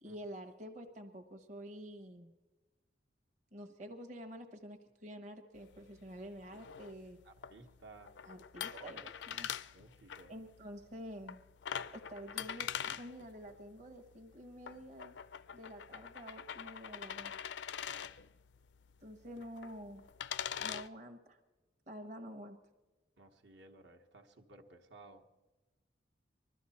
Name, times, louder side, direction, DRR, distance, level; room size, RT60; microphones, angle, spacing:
voice 1, 0.0-2.3 3.5-7.2 8.2-9.5 10.3-11.4 11.9-15.1 15.5-17.3 19.0-20.1 20.6-21.4 21.9-22.6, equal, 40° right, 3 dB, 1.0 m, -49 dB
sound 1, 5.6-20.9, left 8 dB, 75° left, 0.4 m, -45 dB
voice 2, 7.2-8.1 8.7-9.1 9.7-10.3 23.2-25.2, right 3 dB, 70° right, 3 dB, 1.2 m, -56 dB
21.0 x 13.0 x 4.2 m, 1.2 s
head